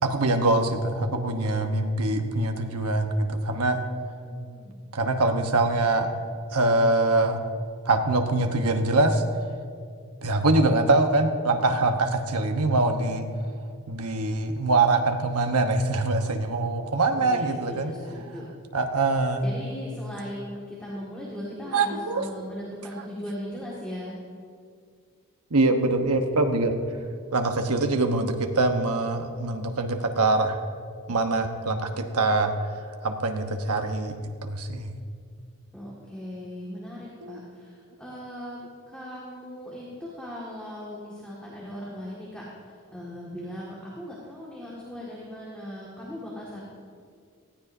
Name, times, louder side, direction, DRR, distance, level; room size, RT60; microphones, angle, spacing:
voice 1, 0.0-3.8 4.9-6.1 6.5-7.4 7.8-9.2 10.2-13.3 13.9-17.9 18.7-19.5 21.7-22.3 25.5-26.7 27.3-30.6 31.1-32.5 33.0-34.9 37.2-37.4, right 2 dB, 85° right, 5 dB, 1.1 m, -24 dB
voice 2, 4.2-4.7 16.8-18.5 19.4-24.2 35.7-46.6, equal, 5° left, -6 dB, 1.9 m, -38 dB
19.0 x 14.5 x 2.7 m, 2.2 s
head